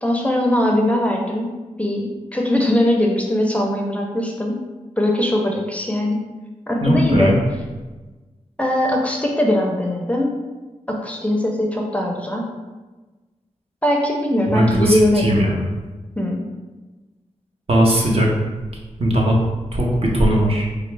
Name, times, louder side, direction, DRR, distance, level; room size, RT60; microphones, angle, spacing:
voice 1, 0.0-1.5 1.8-4.6 5.0-6.2 6.7-7.3 8.6-10.3 10.9-12.4 13.8-15.3 16.2-16.4, left 1 dB, 10° left, 0 dB, 0.5 m, -20 dB
voice 2, 6.8-7.4 14.5-15.6 17.7-18.3 19.0-19.4 19.7-20.7, equal, 50° right, -2 dB, 0.9 m, -18 dB
4.2 x 2.4 x 3.3 m, 1.2 s
wide cardioid pair, 75°, 13 cm